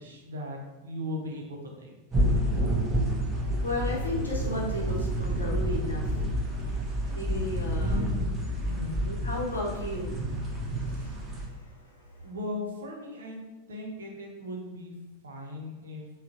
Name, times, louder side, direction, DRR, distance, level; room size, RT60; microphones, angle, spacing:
voice 1, 0.0-1.9 7.7-8.3 8.6-9.0 12.2-13.4 13.7-14.9 15.2-16.0, left 1 dB, 70° right, 0 dB, 0.6 m, -38 dB
sound 1, 2.1-11.5, equal, 20° right, 0.5 m, -30 dB
sound 2, 2.6-5.6 6.0-9.0, equal, 30° left, 0.5 m, -34 dB
voice 2, 3.6-6.3 7.1-8.1 9.0-10.2 10.6-11.6, left 1 dB, 80° left, -3 dB, 0.7 m, -34 dB
3.6 x 2.2 x 2.4 m, 1.1 s
figure-of-eight pair, 90°, 0 cm